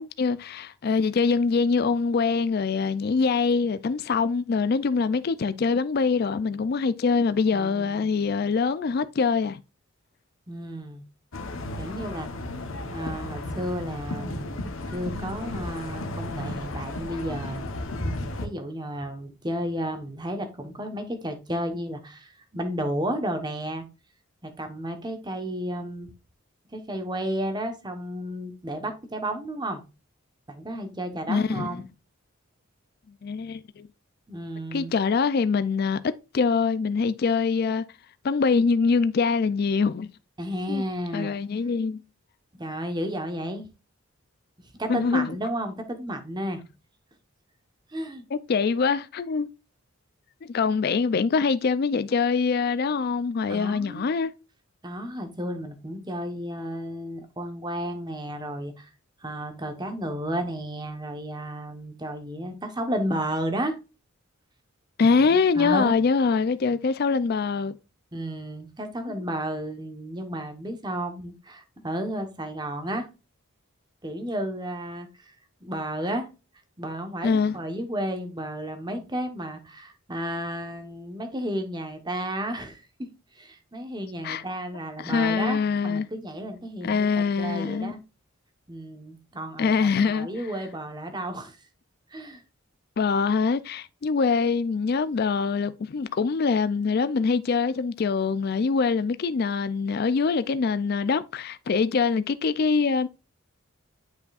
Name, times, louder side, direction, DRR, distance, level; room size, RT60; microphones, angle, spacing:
voice 1, 0.0-9.6 31.3-31.8 33.2-33.9 34.7-36.0 36.3-37.8 38.2-40.1 40.7-40.8 41.1-42.0 44.9-45.3 48.3-49.5 50.5-54.3 65.0-67.8 69.1-69.2 77.2-77.6 84.2-84.4 85.0-86.1 86.8-87.9 89.6-90.3 93.0-103.1, left 5 dB, 45° left, 0.4 m, -24 dB
voice 2, 7.5-8.2 10.5-11.0 11.8-12.3 12.9-17.7 18.4-23.8 24.4-26.1 26.7-29.8 30.5-31.8 34.3-34.9 40.4-41.4 42.6-43.7 44.8-46.6 47.9-48.2 53.5-54.0 54.8-58.9 59.2-63.8 65.0-65.9 68.1-73.1 74.0-75.3 75.6-76.3 76.8-88.0 88.7-91.6 92.1-92.4, right 1 dB, 20° right, 1.1 m, -32 dB
sound 1, 11.3-18.5, left 1 dB, 65° left, 1.0 m, -34 dB
9.3 x 5.3 x 2.4 m
head